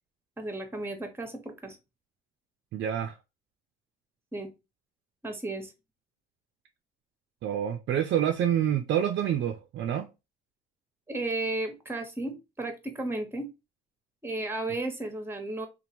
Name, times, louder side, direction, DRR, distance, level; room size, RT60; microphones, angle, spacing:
voice 1, 0.4-1.8 4.3-4.5 5.2-5.7 11.1-13.5 14.2-15.7, right 2 dB, 10° right, 0.9 m, -34 dB
voice 2, 2.7-3.2 7.4-10.1, right 10 dB, 70° right, 0.5 m, -27 dB
2.9 x 2.4 x 2.7 m
cardioid pair, 90°, 20 cm